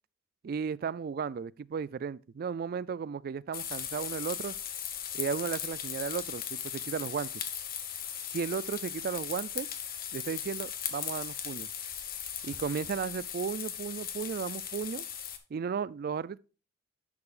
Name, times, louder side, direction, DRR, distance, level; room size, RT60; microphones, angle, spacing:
voice 1, 0.4-4.6 5.1-7.4 8.3-9.7 10.1-11.7 12.4-15.1 15.5-16.4, right 6 dB, 50° right, 0.3 m, -35 dB
sound 1, 3.5-15.4, left 9 dB, 50° left, 1.1 m, -38 dB
10.5 x 6.8 x 2.4 m
head